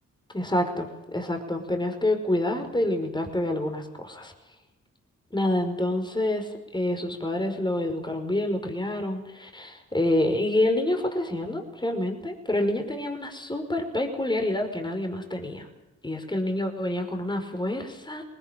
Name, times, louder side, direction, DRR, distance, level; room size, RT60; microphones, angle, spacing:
voice 1, 0.3-4.3 5.3-15.7 16.0-18.2, left 1 dB, 15° left, 5 dB, 5.4 m, -27 dB
20.0 x 18.5 x 9.2 m, 0.98 s
supercardioid pair, 60°, 32 cm